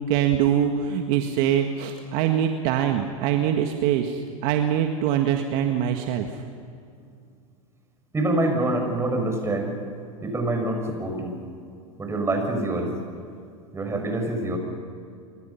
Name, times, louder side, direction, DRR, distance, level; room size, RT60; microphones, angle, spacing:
voice 1, 0.1-6.3, right 9 dB, 50° right, 4 dB, 1.7 m, -23 dB
voice 2, 8.1-9.7 10.2-11.4 12.0-12.9 13.7-14.6, right 2 dB, 15° right, 3 dB, 6.3 m, -25 dB
29.0 x 24.5 x 5.8 m, 2.4 s
hypercardioid pair, 105°, 18 cm